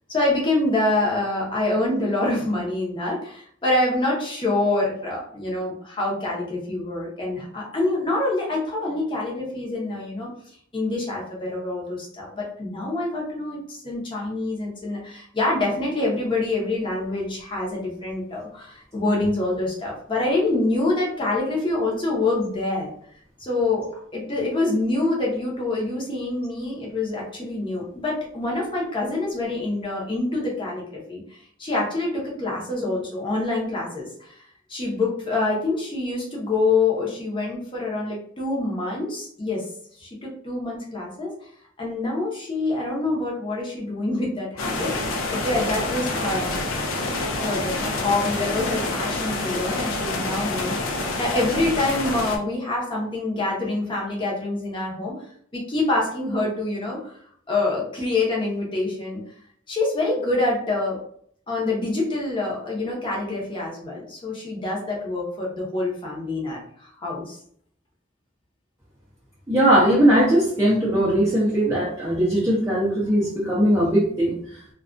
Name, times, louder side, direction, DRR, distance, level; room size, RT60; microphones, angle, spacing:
voice 1, 0.1-10.3 10.7-22.9 23.4-23.9 24.1-34.4 34.7-39.7 40.0-41.5 41.8-46.6 47.4-50.8 51.2-55.2 55.5-57.1 57.5-59.2 59.7-61.0 61.5-67.4, left 2 dB, 25° left, -3 dB, 0.7 m, -26 dB
sound 1, 44.6-52.4, left 2 dB, 85° left, 0.4 m, -27 dB
voice 2, 69.5-74.3, right 1 dB, 15° right, -8 dB, 0.5 m, -19 dB
2.3 x 2.2 x 2.4 m, 0.62 s
head